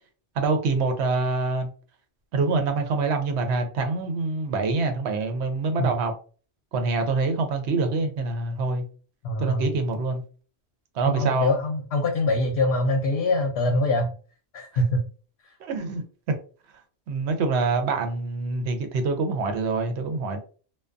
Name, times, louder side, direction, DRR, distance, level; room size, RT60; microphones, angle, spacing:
voice 1, 0.4-1.7 2.3-6.1 6.7-8.9 9.4-10.2 10.9-11.5 15.6-16.4 17.1-20.4, right 3 dB, 85° right, 0.9 m, -25 dB
voice 2, 9.2-9.7 11.0-14.1 14.5-15.0, left 2 dB, 75° left, 0.8 m, -24 dB
2.2 x 2.2 x 2.4 m
omnidirectional pair, 1.1 m